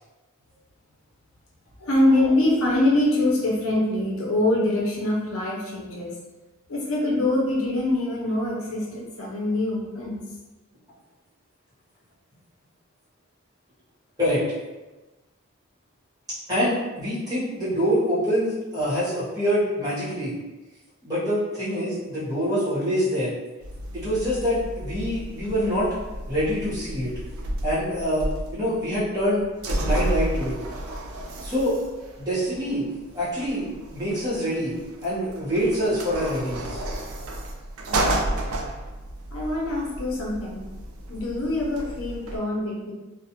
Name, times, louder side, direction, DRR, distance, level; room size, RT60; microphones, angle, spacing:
voice 1, 1.8-6.1 6.7-10.2 39.3-40.7 41.1-42.9, left 1 dB, 75° left, -3 dB, 0.6 m, -24 dB
voice 2, 16.5-20.3 21.0-23.3 23.9-25.9 26.3-27.1 27.6-28.3 28.5-30.6 31.4-31.7 32.2-32.8 33.1-33.7 33.9-36.8, equal, 15° right, -11 dB, 1.0 m, -25 dB
sound 1, 23.6-42.4, right 1 dB, 85° right, 0.4 m, -32 dB
2.4 x 2.1 x 2.8 m, 1.1 s
head